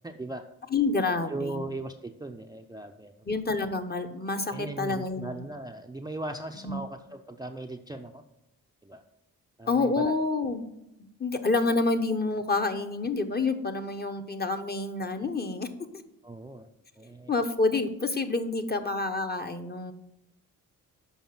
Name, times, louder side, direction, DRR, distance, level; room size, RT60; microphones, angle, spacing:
voice 1, 0.0-0.5 1.1-3.1 4.4-8.2 8.8-9.0 9.6-10.2 16.2-16.7 17.0-17.3, right 2 dB, 10° right, 5 dB, 0.6 m, -38 dB
voice 2, 0.7-1.6 3.3-5.4 6.6-6.8 9.7-10.6 11.2-15.7 17.3-19.9, left 3 dB, 25° left, 6 dB, 0.9 m, -28 dB
7.1 x 5.3 x 5.8 m, 0.86 s
supercardioid pair, 50°, 38 cm